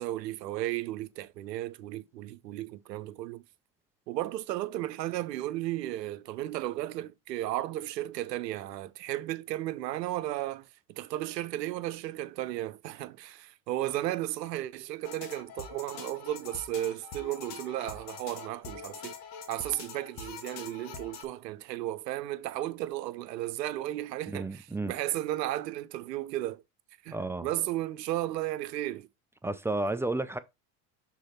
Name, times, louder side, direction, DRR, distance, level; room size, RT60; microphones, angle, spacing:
voice 1, 0.0-3.4 4.1-19.1 19.5-26.6 27.0-29.1, right 14 dB, 85° right, 0.7 m, -34 dB
sound 1, 15.0-21.2, left 5 dB, 55° left, 1.5 m, -44 dB
voice 2, 24.3-24.9 27.1-27.5 29.4-30.4, right 2 dB, 5° right, 0.3 m, -32 dB
6.3 x 3.8 x 4.2 m
hypercardioid pair, 80°, 48 cm